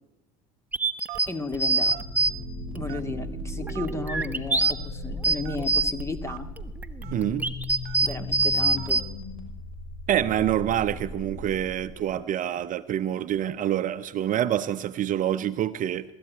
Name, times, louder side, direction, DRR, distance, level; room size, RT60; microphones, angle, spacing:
sound 1, 0.7-2.3 2.7-2.8 3.6-4.7 5.1-6.0 6.6-9.0, right 3 dB, 10° right, 1.5 m, -24 dB
Telephone, 1.1-1.4 1.9-2.1 2.9-3.3 3.7-3.9 4.6-4.8 5.4-5.6 6.3-6.4 7.0-7.1 7.8-8.1 8.8-9.0, right 19 dB, 65° right, 1.1 m, -40 dB
voice 1, 1.3-2.0 2.7-6.5 8.0-9.0, left 3 dB, 15° left, 2.2 m, -34 dB
sound 2, 1.5-12.1, left 1 dB, 30° left, 6.6 m, -37 dB
voice 2, 7.1-7.5 10.1-16.0, right 11 dB, 45° right, 0.8 m, -26 dB
21.0 x 13.5 x 9.6 m
hypercardioid pair, 85°, 19 cm